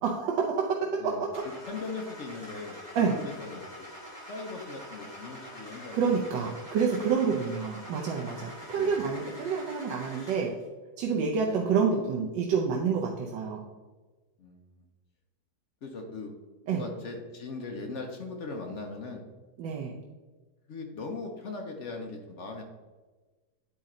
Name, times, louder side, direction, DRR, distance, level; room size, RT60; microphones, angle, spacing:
voice 1, 0.0-1.4 2.9-3.2 5.9-10.5 11.0-13.6 16.7-16.8 19.6-19.9, right 5 dB, 80° right, -1 dB, 1.4 m, -28 dB
voice 2, 1.0-3.9 4.3-6.0 8.7-8.9 11.5-11.6 14.4-14.7 15.8-16.3 16.6-19.2 20.7-22.6, left 3 dB, 60° left, 3 dB, 0.8 m, -39 dB
Car / Engine starting, 1.3-10.6, equal, 15° left, 1.9 m, -45 dB
9.4 x 4.3 x 3.8 m, 1.3 s
omnidirectional pair, 1.9 m